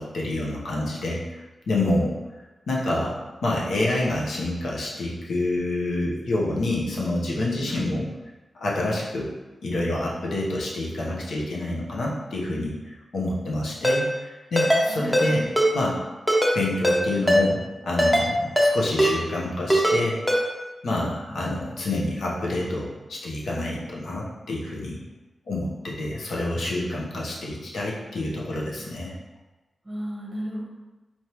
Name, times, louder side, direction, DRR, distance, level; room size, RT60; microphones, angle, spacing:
voice 1, 0.0-2.1 2.7-8.1 8.5-9.3 9.6-16.0 16.5-17.6 17.8-20.2 20.8-25.0 25.5-29.1, left 2 dB, 80° left, -4 dB, 0.9 m, -27 dB
Ringtone, 13.8-14.0 14.6-14.8 15.1-15.3 15.6-15.7 16.3-16.5 16.8-17.0 17.3-17.4 18.0-18.3 18.6-18.7 19.0-19.1 19.7-20.0 20.3-20.4, equal, 5° left, 0.6 m, -19 dB
voice 2, 14.9-15.4 20.9-21.1 29.9-30.6, equal, 15° right, -3 dB, 0.9 m, -34 dB
4.4 x 3.4 x 3.0 m, 1.1 s
wide cardioid pair, 180°, 0 cm